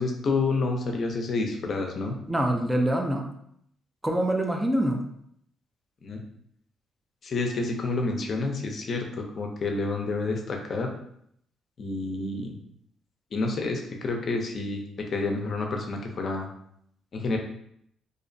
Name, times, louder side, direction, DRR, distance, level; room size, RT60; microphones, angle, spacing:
voice 1, 0.0-2.2 6.0-6.2 7.2-10.9 11.8-12.5 13.3-16.5 17.1-17.4, left 3 dB, 50° left, 2 dB, 0.5 m, -29 dB
voice 2, 2.3-3.3 4.0-5.0, right 1 dB, 10° right, 2 dB, 0.4 m, -25 dB
2.5 x 2.0 x 2.6 m, 0.70 s
cardioid pair, 90°, 0 cm